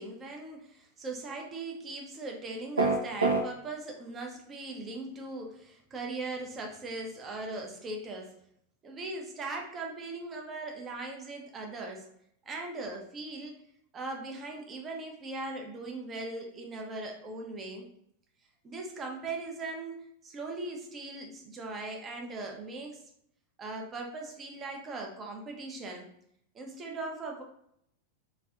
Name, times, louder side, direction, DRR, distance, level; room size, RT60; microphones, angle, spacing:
voice 1, 0.0-8.3 8.8-12.1 12.4-13.5 13.9-17.9 18.6-23.0 23.6-26.1 26.5-27.4, right 2 dB, 25° right, 1 dB, 0.6 m, -39 dB
sound 1, 2.8-3.4, right 3 dB, 75° right, 0.4 m, -24 dB
3.1 x 2.6 x 2.5 m, 0.71 s
figure-of-eight pair, 90°, 0 cm